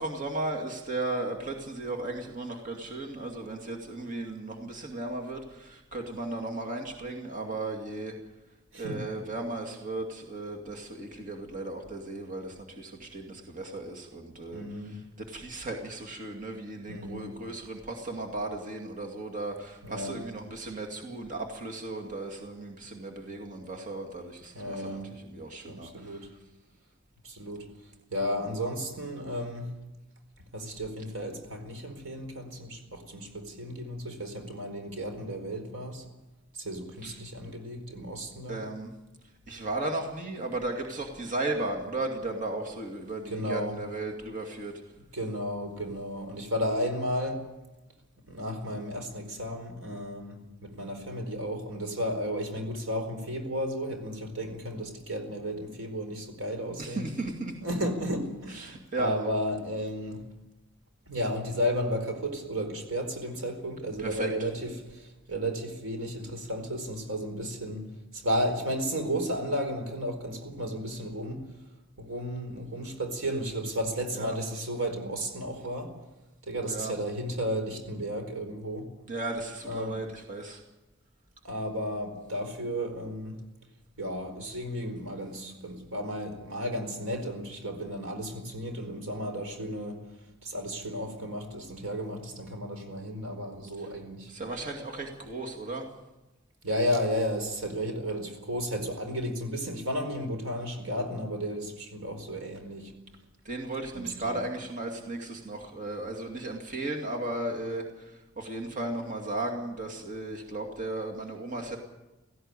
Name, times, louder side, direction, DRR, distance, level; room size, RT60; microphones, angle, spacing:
voice 1, 0.0-8.2 8.8-15.0 15.3-26.3 37.0-37.2 37.4-37.5 38.5-38.9 39.5-44.7 56.8-57.5 58.5-59.2 64.0-64.5 74.1-74.4 76.7-76.9 79.1-80.6 93.8-93.9 94.3-95.9 103.4-111.8, right 2 dB, 40° right, 2.4 m, -35 dB
voice 2, 14.5-15.0 16.9-17.3 19.8-20.2 24.5-25.1 25.7-26.3 27.2-27.7 28.1-29.7 30.5-36.0 36.5-38.6 43.3-43.7 45.1-47.4 48.3-57.1 57.6-60.2 61.1-67.9 68.1-71.4 72.0-75.9 76.4-78.9 79.6-80.0 81.4-83.4 84.0-90.0 90.4-94.3 96.6-102.9 103.9-104.4, equal, 90° right, 4.5 m, -33 dB
17.0 x 16.0 x 9.8 m
head